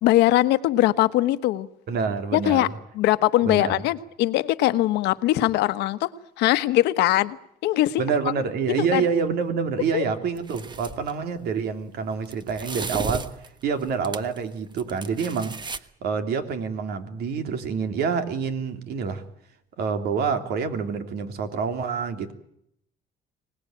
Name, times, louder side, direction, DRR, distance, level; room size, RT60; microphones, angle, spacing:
voice 1, 0.0-1.7 2.3-2.7 2.9-6.1 6.4-7.4 7.6-8.0 8.9-9.1 9.9-10.0, left 15 dB, 85° left, 13 dB, 1.2 m, -21 dB
voice 2, 1.9-2.7 3.4-3.8 8.0-13.3 13.6-19.2 19.8-22.3, right 5 dB, 70° right, 7 dB, 3.2 m, -27 dB
sound 1, 10.4-11.1 12.2-14.4 14.7-15.8, right 4 dB, 25° right, 1.3 m, -34 dB
25.0 x 19.0 x 9.1 m, 0.75 s
cardioid pair, 110°, 17 cm